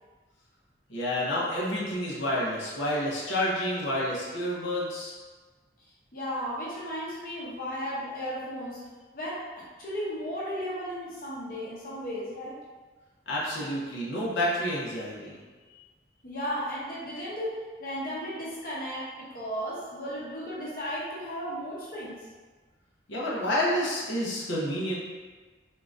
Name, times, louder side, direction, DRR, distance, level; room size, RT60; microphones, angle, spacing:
voice 1, 0.9-5.2 13.3-15.4 23.1-25.0, left 1 dB, 90° left, -6 dB, 0.9 m, -29 dB
voice 2, 6.1-8.9 9.1-12.6 16.2-22.1, equal, 50° left, -7 dB, 0.8 m, -35 dB
3.7 x 3.7 x 2.6 m, 1.4 s
head